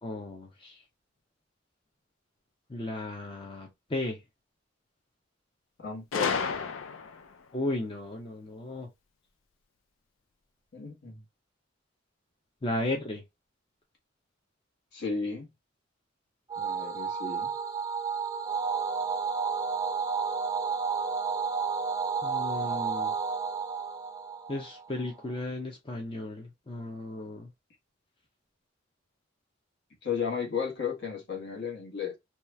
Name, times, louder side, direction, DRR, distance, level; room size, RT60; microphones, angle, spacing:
voice 1, 0.0-0.8 2.7-4.2 7.5-8.9 12.6-13.2 22.2-23.1 24.5-27.5, left 2 dB, 25° left, 0.6 m, -35 dB
voice 2, 5.8-6.5 10.7-11.2 14.9-15.5 16.6-17.5 30.0-32.2, left 6 dB, 60° left, 1.3 m, -34 dB
Gunshot gunfire, 6.1-7.3, left 5 dB, 80° left, 0.4 m, -31 dB
sound 1, 16.5-25.1, right 5 dB, 20° right, 0.5 m, -31 dB
2.9 x 2.3 x 3.1 m
head